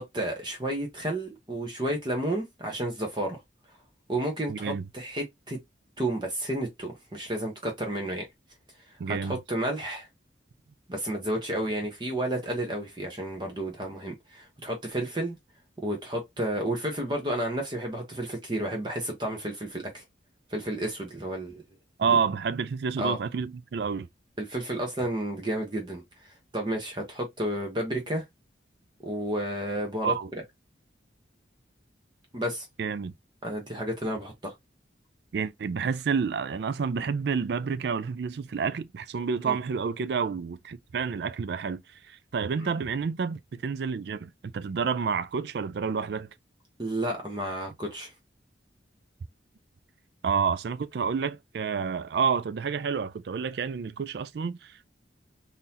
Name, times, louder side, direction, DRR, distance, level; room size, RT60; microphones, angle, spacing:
voice 1, 0.0-3.4 4.1-5.6 6.0-8.3 9.1-10.1 10.9-15.4 15.8-20.0 20.5-21.6 22.1-22.2 23.0-23.2 24.4-28.2 29.0-30.1 32.3-32.7 33.4-34.5 39.4-39.6 42.6-42.7 46.8-48.1, right 1 dB, 25° right, 0.8 m, -31 dB
voice 2, 4.5-4.8 9.0-9.4 22.0-24.1 30.0-30.3 32.8-33.1 35.3-46.3 50.2-54.9, right 6 dB, 65° right, 0.4 m, -29 dB
3.8 x 2.7 x 2.7 m
head